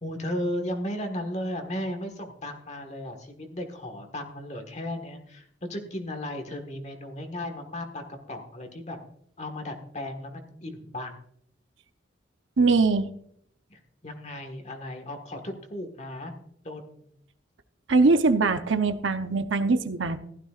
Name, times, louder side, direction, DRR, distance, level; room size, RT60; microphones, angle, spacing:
voice 1, 0.0-9.0 9.4-11.1 13.7-16.3 16.6-17.0, left 1 dB, 35° left, 5 dB, 1.5 m, -35 dB
voice 2, 12.6-13.1 17.9-20.2, right 3 dB, 80° right, 9 dB, 0.8 m, -22 dB
15.5 x 12.5 x 2.5 m, 0.70 s
head